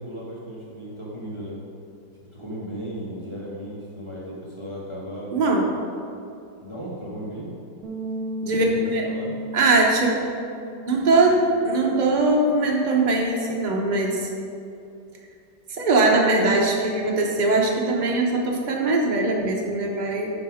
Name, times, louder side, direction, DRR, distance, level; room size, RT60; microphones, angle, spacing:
voice 1, 0.0-1.5 2.2-5.3 6.6-7.5 8.6-9.3, equal, 20° right, -7 dB, 1.2 m, -35 dB
voice 2, 5.3-5.7 8.4-9.1 9.5-10.1 10.9-14.3 15.7-20.3, right 2 dB, 35° right, -1 dB, 0.8 m, -21 dB
sound 1, 7.8-14.1, right 1 dB, 65° right, 1.4 m, -37 dB
10.0 x 4.0 x 4.9 m, 2.6 s
omnidirectional pair, 1.9 m